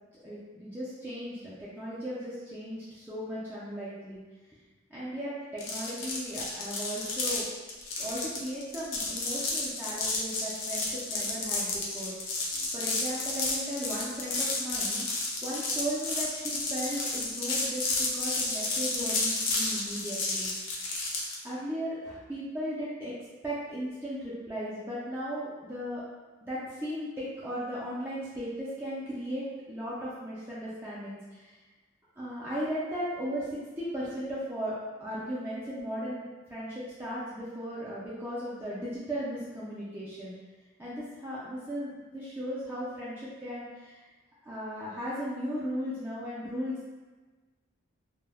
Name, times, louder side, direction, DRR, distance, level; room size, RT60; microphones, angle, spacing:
voice 1, 0.2-4.2 4.9-7.5 8.0-12.1 12.5-15.0 15.4-20.5 21.4-23.1 23.4-26.0 26.5-31.5 32.2-33.5 33.8-36.2 36.5-40.4 40.8-44.0 44.4-47.0, equal, 10° right, -9 dB, 0.3 m, -36 dB
sound 1, 5.6-21.4, left 2 dB, 65° left, 0.5 m, -32 dB
2.1 x 2.1 x 3.3 m, 1.3 s
head